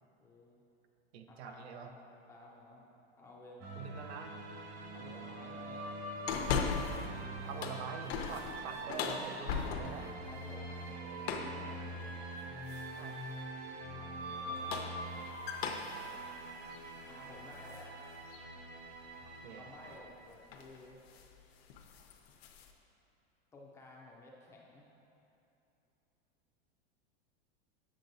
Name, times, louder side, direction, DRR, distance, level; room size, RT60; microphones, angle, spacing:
voice 1, 0.2-0.6 1.3-2.9 3.2-3.8 4.9-5.9 7.6-7.8 10.1-12.4 13.9-14.9 17.1-18.0 19.2-21.0 23.5-24.9, left 2 dB, 10° left, -3 dB, 0.3 m, -55 dB
voice 2, 1.1-1.9 3.8-4.4 7.4-10.1 12.9-13.2 19.2-19.6, right 6 dB, 90° right, 5 dB, 0.7 m, -45 dB
sound 1, 3.6-20.0, right 1 dB, 65° right, 1.5 m, -44 dB
sound 2, 6.3-7.1 7.5-10.1 11.2-11.6 12.7-13.1 14.4-17.9 18.3-18.4 20.0-20.2 20.5-20.8 21.1-21.3 21.7-22.7, left 6 dB, 70° left, 0.7 m, -38 dB
7.7 x 7.4 x 2.6 m, 2.9 s
supercardioid pair, 155°, 32 cm